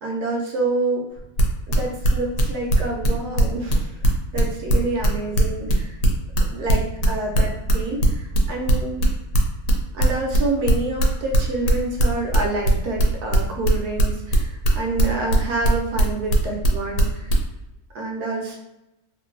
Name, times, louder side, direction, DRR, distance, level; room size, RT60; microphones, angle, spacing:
voice 1, 0.0-1.1 1.7-4.0 4.3-6.0 6.5-9.0 9.9-17.3 17.9-18.6, right 3 dB, 90° right, -1 dB, 1.2 m, -27 dB
sound 1, 1.2-17.4, right 1 dB, 80° left, 1.1 m, -19 dB
2.9 x 2.6 x 2.5 m, 0.91 s
omnidirectional pair, 1.6 m